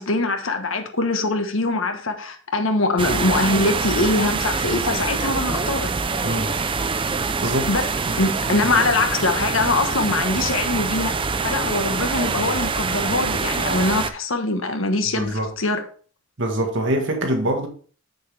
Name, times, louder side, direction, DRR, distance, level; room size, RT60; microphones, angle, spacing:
voice 1, 0.0-5.9 7.7-7.9 8.2-11.1 11.4-15.8, left 2 dB, 75° left, 1.3 m, -23 dB
sound 1, 3.0-14.1, right 4 dB, 25° right, 0.5 m, -25 dB
voice 2, 6.2-6.5 7.4-7.7 8.1-8.2 8.5-8.9 15.2-15.5 16.4-17.7, right 1 dB, 65° right, 1.6 m, -24 dB
7.6 x 6.7 x 3.3 m
head